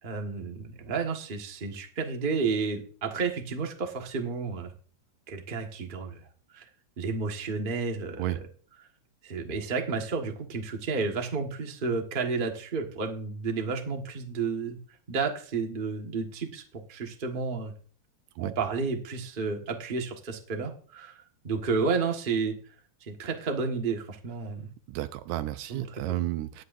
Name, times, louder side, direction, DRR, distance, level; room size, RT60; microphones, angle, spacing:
voice 1, 0.0-4.7 5.3-6.2 6.5-6.7 7.0-8.4 9.2-14.8 15.1-17.7 18.4-21.2 21.4-22.5 23.0-24.7 25.7-26.2, right 4 dB, 30° right, 3 dB, 0.9 m, -31 dB
voice 2, 24.9-26.6, right 15 dB, 80° right, 13 dB, 2.0 m, -32 dB
19.5 x 8.0 x 2.6 m, 0.43 s
omnidirectional pair, 3.3 m